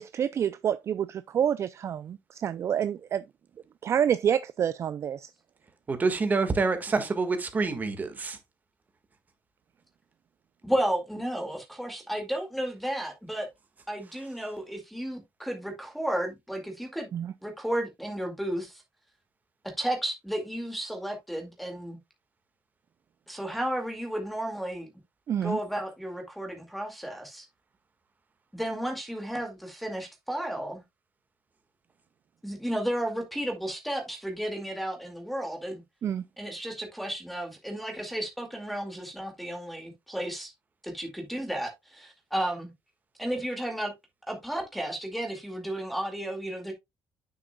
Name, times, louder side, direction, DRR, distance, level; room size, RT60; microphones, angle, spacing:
voice 1, 0.0-3.2 3.8-5.3 17.1-17.3 25.3-25.6 36.0-36.2, right 9 dB, 45° right, 0.4 m, -28 dB
voice 2, 5.9-8.4, right 4 dB, 25° right, 1.6 m, -27 dB
voice 3, 10.6-13.5 13.9-17.1 17.4-18.8 19.8-22.0 23.3-24.9 25.4-27.5 28.5-30.8 32.4-35.8 36.4-40.5 40.8-42.7 43.2-43.9 44.3-46.7, right 1 dB, ahead, 2.1 m, -33 dB
9.0 x 6.8 x 2.2 m
cardioid pair, 145°, 7 cm